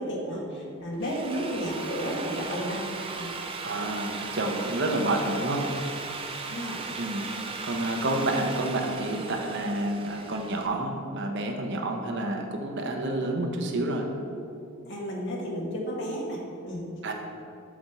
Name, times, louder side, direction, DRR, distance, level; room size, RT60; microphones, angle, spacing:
voice 1, 0.0-2.8 3.1-3.3 6.5-6.8 14.6-16.8, equal, 60° left, -2 dB, 1.3 m, -32 dB
Drill, 0.8-10.7, right 4 dB, 25° right, 0.4 m, -37 dB
voice 2, 3.6-5.6 7.0-7.3 7.6-14.1 17.0-17.1, right 1 dB, 55° right, 2 dB, 0.8 m, -29 dB
6.0 x 4.2 x 5.3 m, 2.5 s
head